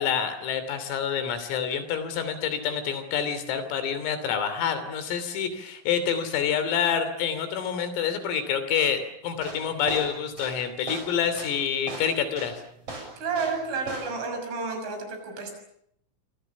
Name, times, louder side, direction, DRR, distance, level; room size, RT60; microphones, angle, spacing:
voice 1, 0.0-12.5, left 7 dB, 80° left, 11 dB, 5.5 m, -27 dB
sound 1, 9.3-13.6 13.9-14.3, right 2 dB, 30° right, 7.6 m, -37 dB
voice 2, 13.2-15.5, right 4 dB, 65° right, 5 dB, 8.5 m, -31 dB
25.5 x 25.5 x 7.2 m, 0.73 s
omnidirectional pair, 5.9 m